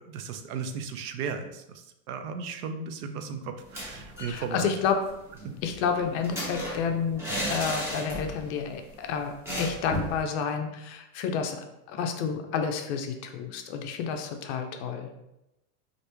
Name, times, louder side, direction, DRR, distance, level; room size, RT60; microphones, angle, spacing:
voice 1, 0.1-4.7 5.4-5.5, right 5 dB, 70° right, 7 dB, 0.6 m, -36 dB
sound 1, 3.6-4.4 4.7-4.8 5.1-8.5 8.8-8.9 9.5-10.2, equal, 5° right, 0.6 m, -34 dB
voice 2, 4.3-5.0 5.6-15.1, left 6 dB, 50° left, 5 dB, 0.4 m, -30 dB
2.9 x 2.5 x 3.3 m, 0.89 s
supercardioid pair, 140°, 46 cm